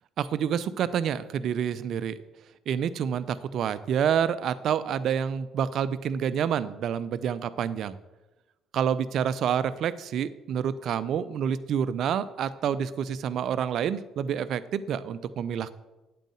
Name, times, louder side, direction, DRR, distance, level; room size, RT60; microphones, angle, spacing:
voice 1, 0.2-2.2 2.7-7.9 8.7-15.7, right 8 dB, 60° right, 14 dB, 0.6 m, -28 dB
9.0 x 7.8 x 7.8 m, 1.1 s
hypercardioid pair, 50°, 0 cm